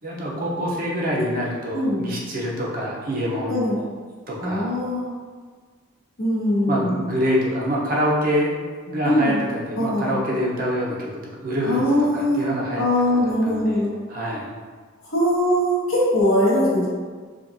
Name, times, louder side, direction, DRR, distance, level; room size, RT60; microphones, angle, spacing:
voice 1, 0.0-3.5 4.3-4.7 6.7-8.5 8.9-13.8 14.1-14.5, equal, 45° right, -4 dB, 0.8 m, -26 dB
voice 2, 1.7-2.1 3.5-3.8 4.4-5.1 6.2-6.9 9.0-9.4 9.8-10.2 11.6-12.5 12.8-13.9 15.1-16.9, left 1 dB, 70° left, -8 dB, 1.5 m, -21 dB
5.0 x 2.5 x 2.7 m, 1.5 s
head